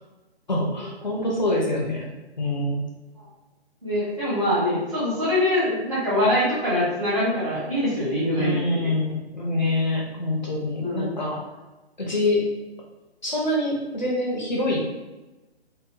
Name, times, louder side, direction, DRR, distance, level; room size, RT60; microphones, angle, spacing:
voice 1, 0.5-2.1 2.4-2.8 8.4-11.4 12.0-12.5 13.2-14.8, left 1 dB, 45° left, -2 dB, 0.5 m, -25 dB
voice 2, 3.8-8.9 10.8-11.1, left 1 dB, 30° right, -12 dB, 0.6 m, -24 dB
2.7 x 2.1 x 2.4 m, 1.1 s
hypercardioid pair, 180°, 32 cm